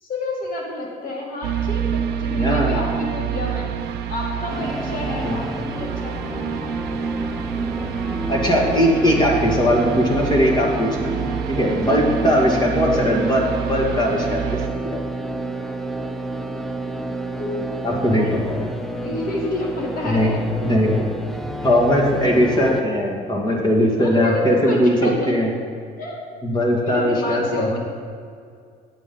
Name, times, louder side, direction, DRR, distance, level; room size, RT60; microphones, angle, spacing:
voice 1, 0.0-3.8 4.1-6.6 7.6-7.8 11.9-12.0 12.3-12.4 17.4-18.5 19.0-20.4 23.9-25.4 26.0-26.2 26.8-27.8, left 2 dB, 55° left, -1 dB, 2.5 m, -29 dB
sound 1, 1.4-14.7, right 8 dB, 75° right, 0.7 m, -27 dB
voice 2, 2.3-2.8 5.2-5.4 8.3-11.1 11.5-15.0 17.8-18.7 20.0-20.3 20.6-21.1 21.6-25.5 26.4-27.8, equal, 25° left, -1 dB, 2.1 m, -19 dB
sound 2, 4.5-22.8, right 1 dB, ahead, 0.6 m, -30 dB
8.9 x 7.7 x 5.4 m, 2.2 s
cardioid pair, 110°, 17 cm